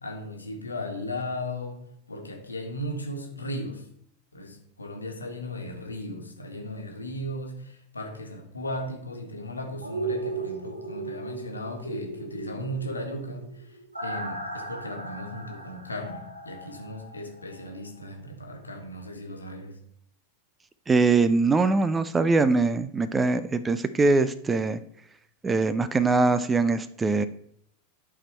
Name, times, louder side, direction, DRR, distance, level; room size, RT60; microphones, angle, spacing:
voice 1, 0.0-3.9 4.3-19.8, left 1 dB, 80° left, 2 dB, 1.5 m, -36 dB
sound 1, 9.8-17.7 18.0-18.1, right 3 dB, 80° right, 1.2 m, -37 dB
voice 2, 20.9-24.8 25.4-27.3, right 3 dB, 15° right, 14 dB, 0.5 m, -22 dB
11.5 x 4.3 x 4.4 m, 0.70 s
figure-of-eight pair, 90°, 0 cm